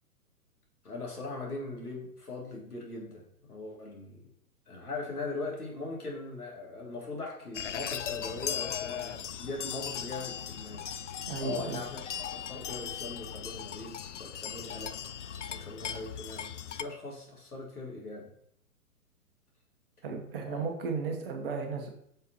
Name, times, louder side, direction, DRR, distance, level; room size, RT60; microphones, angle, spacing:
voice 1, 0.8-3.2 3.5-4.2 4.7-10.8 11.4-15.0 15.5-18.3 20.5-20.7, left 3 dB, 75° left, -3 dB, 2.9 m, -40 dB
sound 1, 7.5-16.8, left 9 dB, 55° left, 0.5 m, -38 dB
voice 2, 11.3-11.8 20.0-21.9, right 5 dB, 35° right, 3 dB, 1.3 m, -34 dB
9.3 x 5.6 x 3.0 m, 0.71 s
figure-of-eight pair, 120°, 46 cm